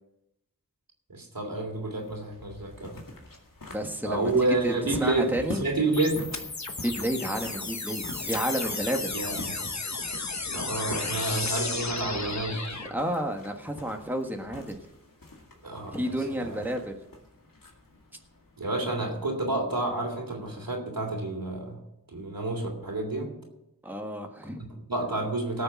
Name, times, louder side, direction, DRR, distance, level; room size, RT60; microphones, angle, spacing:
voice 1, 1.1-3.0 4.0-6.5 9.1-9.4 10.5-12.9 15.6-16.6 18.6-21.8 22.1-23.3 24.6-25.6, right 2 dB, 85° right, 1 dB, 3.0 m, -29 dB
sound 1, 1.7-19.3, left 2 dB, 75° left, 2.1 m, -45 dB
voice 2, 3.7-4.3 4.6-4.7 5.0-5.6 6.8-9.1 12.9-14.8 15.9-17.0 23.8-24.8, right 1 dB, 5° right, 3 dB, 1.5 m, -31 dB
sound 2, 5.9-12.9, left 3 dB, 55° left, 1.2 m, -33 dB
17.5 x 6.7 x 5.9 m, 0.85 s
wide cardioid pair, 45°, 34 cm